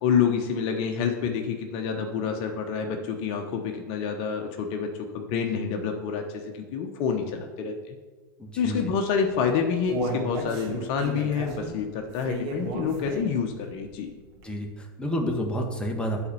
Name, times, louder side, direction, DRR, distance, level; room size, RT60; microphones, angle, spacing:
voice 1, 0.0-4.9 5.1-7.9 8.6-14.1, left 6 dB, 50° left, 4 dB, 1.0 m, -28 dB
voice 2, 8.4-8.8 14.4-16.3, equal, 10° left, 1 dB, 1.5 m, -29 dB
Human voice, 9.3-13.5 13.8-13.9 14.4-14.5, right 2 dB, 60° right, 2.1 m, -33 dB
8.3 x 4.4 x 6.9 m, 1.4 s
hypercardioid pair, 95°, 12 cm